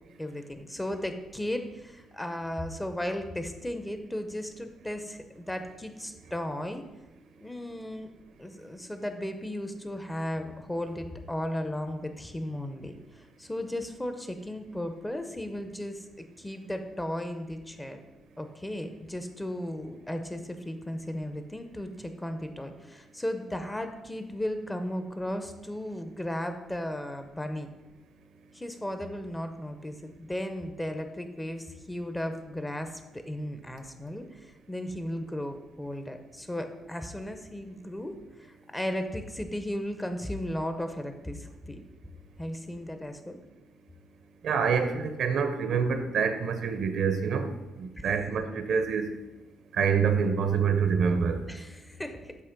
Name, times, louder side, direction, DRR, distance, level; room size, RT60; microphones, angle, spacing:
voice 1, 0.2-6.8 7.4-8.1 8.4-18.0 18.4-27.7 28.5-38.1 38.4-41.8 42.4-43.4 48.0-48.2 51.5-52.4, left 1 dB, 10° left, 7 dB, 0.7 m, -35 dB
voice 2, 44.4-47.5 47.8-49.1 49.7-51.4, right 6 dB, 70° right, 8 dB, 0.7 m, -26 dB
8.3 x 2.9 x 5.9 m, 1.0 s
cardioid pair, 90°, 0 cm